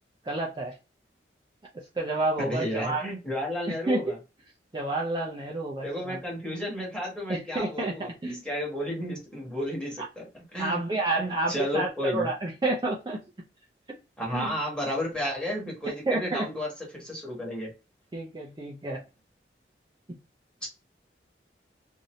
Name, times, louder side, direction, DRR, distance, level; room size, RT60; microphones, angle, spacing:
voice 1, 0.2-0.8 1.9-3.1 3.7-4.2 4.7-6.2 7.3-8.4 10.0-10.1 10.6-13.2 13.9-14.0 14.3-14.5 16.1-16.4 18.1-19.0, right 2 dB, 25° right, -3 dB, 0.5 m, -30 dB
voice 2, 2.4-4.1 5.8-10.8 11.2-12.3 14.2-17.7 20.6-20.7, equal, 5° left, -3 dB, 1.3 m, -32 dB
2.7 x 2.6 x 3.0 m, 0.29 s
head